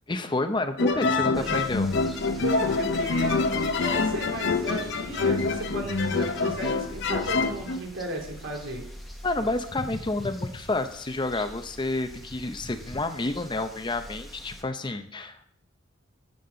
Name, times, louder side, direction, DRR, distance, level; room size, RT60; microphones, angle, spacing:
voice 1, 0.1-1.9 9.2-15.5, left 2 dB, 25° left, 8 dB, 0.6 m, -29 dB
sound 1, 0.8-7.8, left 4 dB, 60° left, 0.7 m, -26 dB
voice 2, 1.2-1.6 2.4-8.9, right 1 dB, 80° right, 1 dB, 2.4 m, -34 dB
sound 2, 1.3-14.6, equal, ahead, 1.1 m, -44 dB
12.5 x 9.2 x 3.8 m, 0.67 s
head